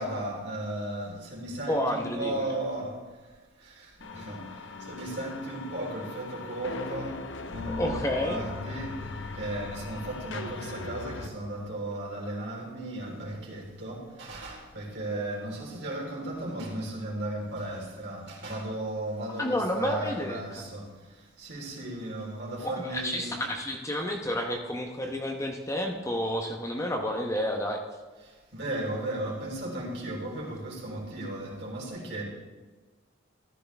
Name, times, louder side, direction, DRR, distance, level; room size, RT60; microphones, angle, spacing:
voice 1, 0.0-3.0 3.6-23.4 28.2-32.2, right 1 dB, 60° right, 3.8 m, -36 dB
voice 2, 1.7-2.5 7.8-8.4 19.4-20.4 22.8-27.8, left 1 dB, 15° left, 0.9 m, -30 dB
sound 1, 4.0-11.3, left 3 dB, 70° left, 0.9 m, -39 dB
14.0 x 12.5 x 3.4 m
head